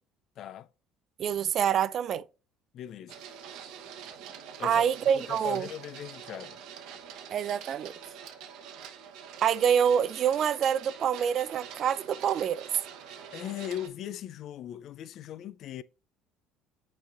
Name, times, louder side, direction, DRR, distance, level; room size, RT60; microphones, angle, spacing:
voice 1, 0.4-0.7 2.7-3.2 4.6-4.9 5.1-6.6 13.0-15.8, left 11 dB, 60° left, 0.4 m, -39 dB
voice 2, 1.2-2.2 4.6-5.7 7.3-7.9 9.4-12.7, right 8 dB, 50° right, 0.4 m, -26 dB
Printer, 3.1-13.9, right 8 dB, 70° right, 1.0 m, -45 dB
9.6 x 4.3 x 2.6 m
hypercardioid pair, 75°, 0 cm